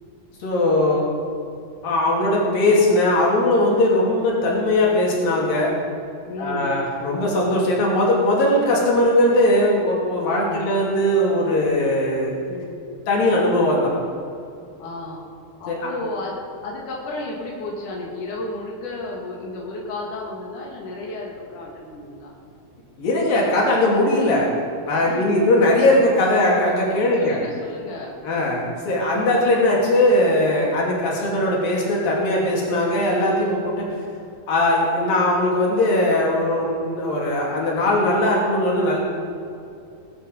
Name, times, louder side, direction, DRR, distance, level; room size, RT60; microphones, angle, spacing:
voice 1, 0.4-1.1 1.8-5.7 6.4-12.4 13.1-13.9 15.7-15.8 23.0-24.5 24.9-27.4 28.2-34.0 34.5-39.0, left 1 dB, 85° left, -3 dB, 4.6 m, -19 dB
voice 2, 6.3-6.8 10.3-10.6 12.5-12.8 14.8-15.2 15.6-22.3 25.0-25.4 27.2-28.2 30.8-31.1, left 2 dB, 65° left, -3 dB, 3.9 m, -33 dB
20.0 x 11.0 x 5.4 m, 2.6 s
omnidirectional pair, 3.9 m